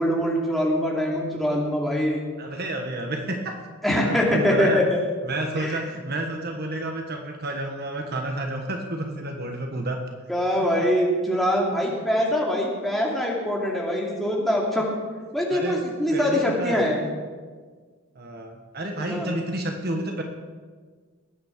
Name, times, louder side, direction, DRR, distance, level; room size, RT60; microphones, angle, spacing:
voice 1, 0.0-2.2 3.8-4.8 5.5-5.8 10.3-14.9 15.3-17.0 19.0-19.3, equal, ahead, -3 dB, 2.6 m, -23 dB
voice 2, 2.4-3.6 4.0-4.8 5.3-10.0 15.5-15.8 16.1-16.8 18.1-20.2, right 1 dB, 45° right, 3 dB, 1.4 m, -30 dB
20.5 x 9.3 x 5.2 m, 1.5 s
head